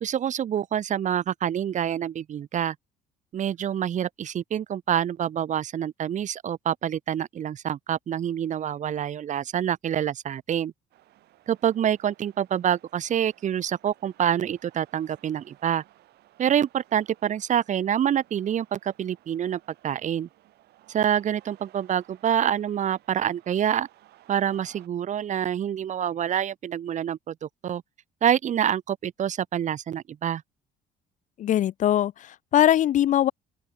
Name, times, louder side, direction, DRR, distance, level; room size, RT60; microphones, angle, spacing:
voice 1, 0.0-2.8 3.3-10.7 11.5-15.8 16.4-20.3 20.9-23.9 24.3-27.8 28.2-30.4, right 9 dB, 45° right, 1.0 m, -26 dB
sound 1, 10.9-24.9, right 15 dB, 75° right, 5.3 m, -58 dB
voice 2, 31.4-33.3, left 11 dB, 50° left, 0.4 m, -21 dB
open air
cardioid pair, 110°, 17 cm